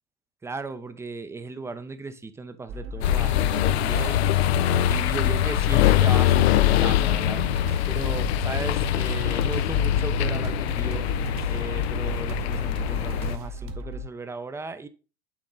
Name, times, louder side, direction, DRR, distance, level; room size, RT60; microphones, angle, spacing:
voice 1, 0.4-4.2 4.8-7.5 7.9-11.1 11.5-14.9, right 3 dB, 10° right, 0.6 m, -36 dB
sound 1, 2.7-14.0, equal, 40° right, 1.2 m, -36 dB
sound 2, 3.0-13.4, left 11 dB, 70° left, 0.6 m, -23 dB
8.7 x 3.7 x 3.8 m
hypercardioid pair, 95°, 33 cm